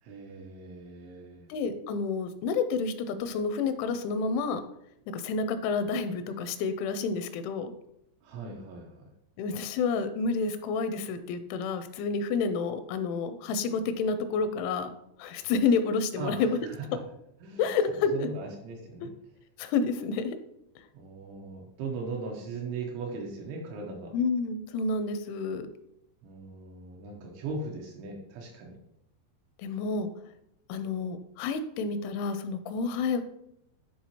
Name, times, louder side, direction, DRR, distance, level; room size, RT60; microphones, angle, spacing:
voice 1, 0.0-1.5 8.2-9.1 16.2-16.9 17.4-17.7 18.1-19.1 20.9-24.1 26.2-28.8, right 3 dB, 80° right, -1 dB, 3.1 m, -39 dB
voice 2, 1.5-4.6 5.1-7.7 9.4-14.9 15.2-16.5 17.6-18.3 19.6-20.4 24.1-25.7 29.6-30.1 30.7-33.2, left 4 dB, 85° left, 10 dB, 2.9 m, -29 dB
10.0 x 3.6 x 2.9 m, 0.77 s
omnidirectional pair, 5.4 m